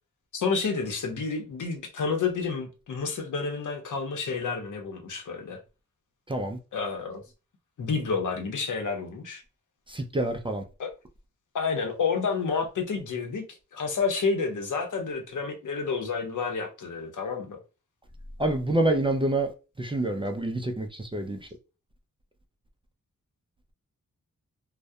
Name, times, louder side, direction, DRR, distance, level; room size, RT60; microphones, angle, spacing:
voice 1, 0.3-5.6 6.7-7.2 7.8-9.4 10.8-10.9 11.5-13.4 13.7-17.6, left 5 dB, 75° left, 0.7 m, -29 dB
voice 2, 6.3-6.6 9.9-10.6 18.4-19.5 19.8-21.4, right 1 dB, 15° right, 0.3 m, -27 dB
2.2 x 2.1 x 2.6 m
cardioid pair, 75°, 31 cm